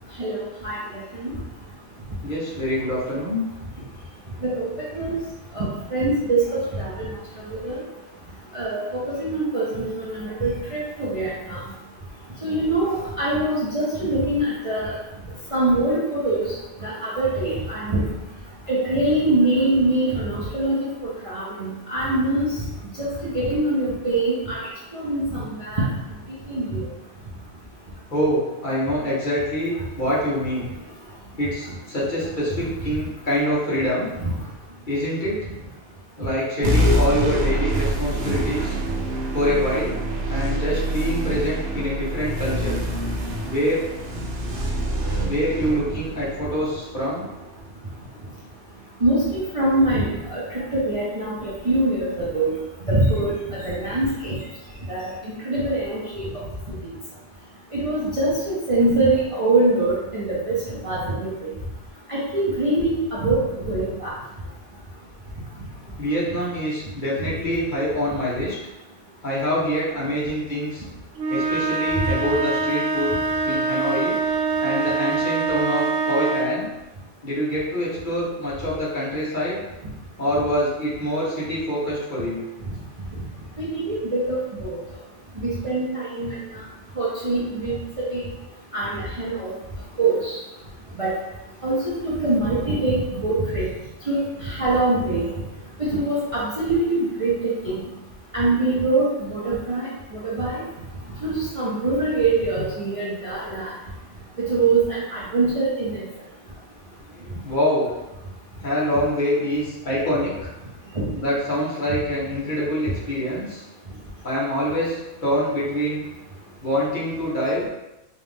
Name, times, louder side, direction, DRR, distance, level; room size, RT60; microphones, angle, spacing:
voice 1, 0.2-0.8 1.1-1.3 4.4-4.7 4.9-5.1 5.5-7.1 7.5-7.8 8.5-11.6 12.4-14.9 15.5-16.4 16.8-18.0 18.7-22.5 23.0-24.6 24.9-25.9 26.5-26.8 34.2-34.3 49.0-50.4 50.7-52.5 52.9-54.4 54.9-56.3 56.7-56.8 57.7-60.5 60.8-61.3 62.1-64.1 83.6-84.8 85.4-86.3 87.0-88.2 88.7-89.5 90.0-90.4 91.0-91.1 91.6-93.7 94.1-95.3 95.8-97.8 98.3-100.6 101.2-103.7 104.5-106.0, right 2 dB, 30° right, -8 dB, 0.8 m, -23 dB
voice 2, 2.2-3.5 28.1-30.7 31.4-34.1 34.9-35.4 36.2-38.7 39.3-40.0 40.3-42.8 43.4-43.8 45.2-47.3 66.0-68.5 69.2-70.8 71.3-73.1 73.4-74.1 74.6-76.7 77.2-79.6 80.2-82.4 107.2-107.9 108.6-110.5 111.1-113.6 114.2-116.0 116.6-117.7, equal, 40° left, -8 dB, 1.4 m, -25 dB
sound 1, 36.6-47.5, equal, 60° right, 0.9 m, -25 dB
sound 2, 71.2-76.6, right 4 dB, 85° right, 0.9 m, -24 dB
4.3 x 2.5 x 3.5 m, 0.98 s
omnidirectional pair, 1.2 m